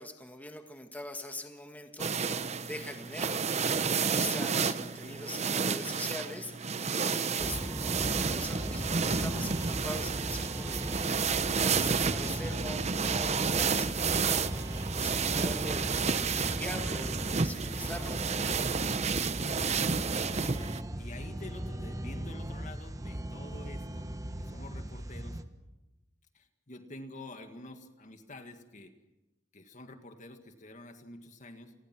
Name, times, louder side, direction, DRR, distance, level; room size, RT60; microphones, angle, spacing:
voice 1, 0.0-11.3 11.7-14.6 14.9-16.0 16.3-18.2, left 1 dB, 10° left, 4 dB, 1.7 m, -43 dB
sound 1, 2.0-20.8, right 5 dB, 40° right, 0.8 m, -31 dB
sound 2, 7.4-25.4, right 1 dB, 20° right, 1.4 m, -38 dB
voice 2, 19.5-25.4 26.3-28.9 29.5-31.7, left 1 dB, 45° left, 6 dB, 1.9 m, -48 dB
28.5 x 20.5 x 6.1 m, 1.0 s
head